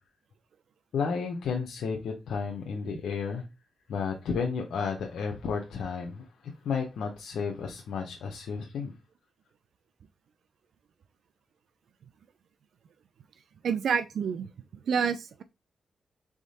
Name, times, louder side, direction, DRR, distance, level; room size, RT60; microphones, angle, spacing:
voice 1, 0.9-3.4 3.9-6.2 6.6-8.9, left 5 dB, 85° left, 0.7 m, -32 dB
voice 2, 13.6-14.5 14.9-15.4, right 6 dB, 80° right, 0.3 m, -28 dB
3.6 x 3.5 x 4.1 m
cardioid pair, 65°, 0 cm